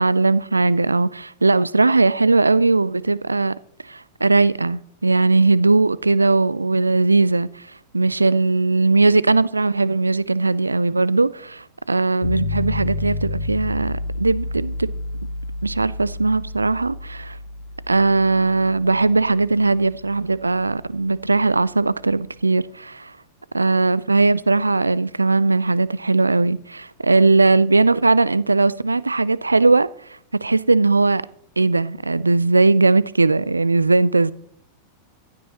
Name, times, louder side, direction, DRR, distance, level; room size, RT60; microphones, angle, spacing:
voice 1, 0.0-3.5 3.9-7.6 7.9-14.9 15.6-17.4 17.9-23.1 23.5-29.9 30.4-31.2 31.6-34.3, right 3 dB, 80° right, 0.4 m, -19 dB
sound 1, 12.2-22.1, left 2 dB, 75° left, 3.0 m, -31 dB
15.5 x 12.0 x 3.0 m
figure-of-eight pair, 90°, 0 cm